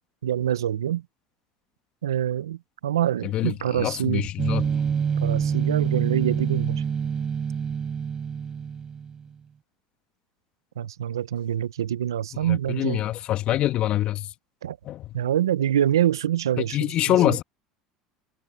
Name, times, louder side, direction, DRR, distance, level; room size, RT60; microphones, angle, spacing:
voice 1, 0.2-1.0 2.0-4.3 5.2-6.8 10.8-13.0 14.6-14.8 15.1-16.8 17.1-17.4, right 10 dB, 90° right, 0.9 m, -25 dB
voice 2, 3.2-4.7 12.4-14.3 14.8-15.1 16.7-17.4, left 14 dB, 50° left, 2.3 m, -25 dB
sound 1, 4.4-9.3, right 7 dB, 35° right, 5.7 m, -26 dB
hypercardioid pair, 80°, 2 cm